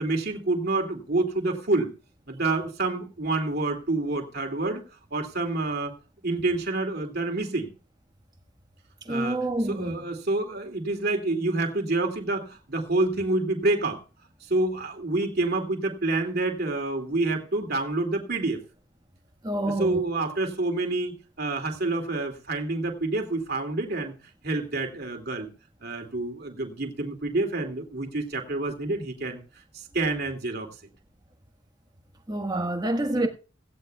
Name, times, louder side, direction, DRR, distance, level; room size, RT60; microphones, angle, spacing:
voice 1, 0.0-1.9 2.3-4.8 5.1-5.9 6.2-7.7 9.1-14.0 14.4-18.6 19.8-24.1 24.4-25.5 25.8-29.4 29.7-30.7, right 2 dB, 55° right, 2.5 m, -28 dB
voice 2, 9.0-10.0 19.4-20.0 32.3-33.3, right 1 dB, 20° right, 1.5 m, -27 dB
17.0 x 14.5 x 2.3 m
head